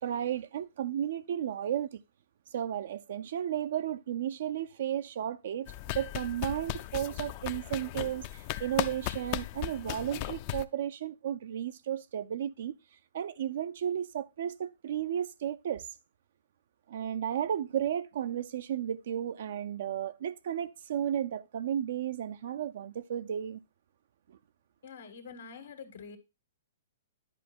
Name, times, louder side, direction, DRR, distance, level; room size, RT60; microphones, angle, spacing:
voice 1, 0.0-2.0 2.5-12.8 13.1-15.9 16.9-23.6 24.3-24.4, right 10 dB, 65° right, 0.5 m, -33 dB
sound 1, 5.7-10.6, left 15 dB, 40° left, 0.5 m, -36 dB
voice 2, 24.8-26.2, left 5 dB, 85° left, 1.8 m, -46 dB
10.5 x 4.7 x 4.3 m
hypercardioid pair, 140°, 0 cm